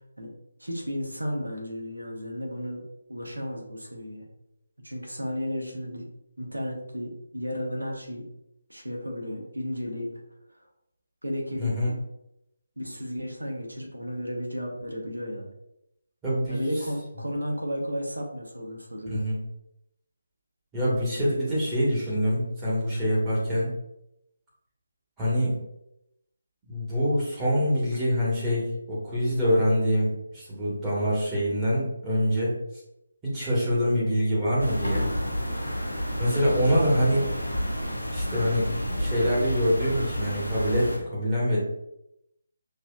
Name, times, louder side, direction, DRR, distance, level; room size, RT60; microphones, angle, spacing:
voice 1, 0.6-2.8 3.1-4.2 4.8-6.1 6.4-8.2 8.7-10.2 11.2-12.0 12.8-15.5 16.5-19.2 36.3-36.6, equal, 80° right, 0 dB, 1.1 m, -33 dB
voice 2, 11.6-11.9 16.2-16.6 19.1-19.4 20.7-23.7 25.2-25.6 26.7-32.6 33.2-35.1 36.2-37.3 38.1-38.7 39.0-41.6, equal, 10° right, -9 dB, 1.4 m, -25 dB
sound 1, 34.6-41.0, equal, 85° left, 0.9 m, -30 dB
5.6 x 2.8 x 2.3 m, 0.82 s
figure-of-eight pair, 150°, 0 cm